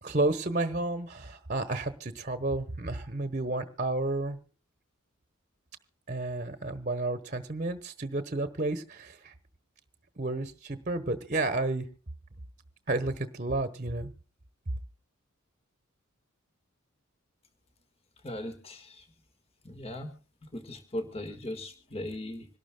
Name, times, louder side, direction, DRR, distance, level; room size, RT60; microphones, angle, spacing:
voice 1, 0.0-4.4 6.1-9.3 10.2-11.8 12.9-14.1, right 2 dB, 40° right, 10 dB, 1.1 m, -31 dB
voice 2, 18.2-19.0 19.6-20.1 20.5-22.5, left 1 dB, 30° left, 7 dB, 1.6 m, -38 dB
26.0 x 12.0 x 2.2 m, 0.37 s
head